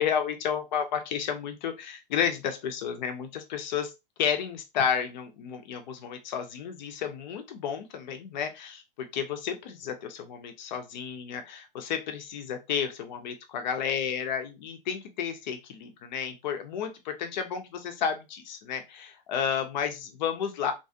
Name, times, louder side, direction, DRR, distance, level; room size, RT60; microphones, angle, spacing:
voice 1, 0.0-3.9 4.2-20.7, left 7 dB, 50° left, 7 dB, 0.8 m, -31 dB
3.0 x 2.4 x 2.8 m, 0.24 s
hypercardioid pair, 115°, 29 cm